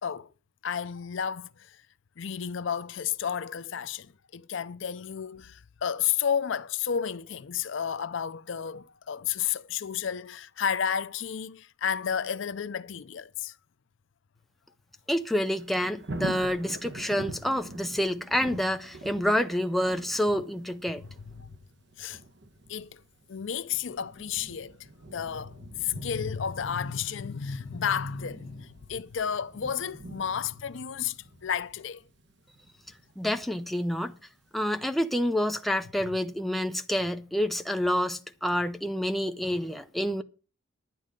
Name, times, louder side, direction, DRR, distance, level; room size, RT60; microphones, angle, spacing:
voice 1, 0.6-1.8 2.2-13.6 21.4-21.5 22.0-22.2 22.7-23.0 23.3-24.8 25.1-32.0, left 8 dB, 70° left, 0.5 m, -32 dB
voice 2, 15.1-21.0 33.2-34.1 34.5-40.2, equal, ahead, 0.6 m, -28 dB
Thunder, 15.4-34.2 34.7-34.8, right 2 dB, 55° right, 1.1 m, -45 dB
10.5 x 9.3 x 5.1 m
head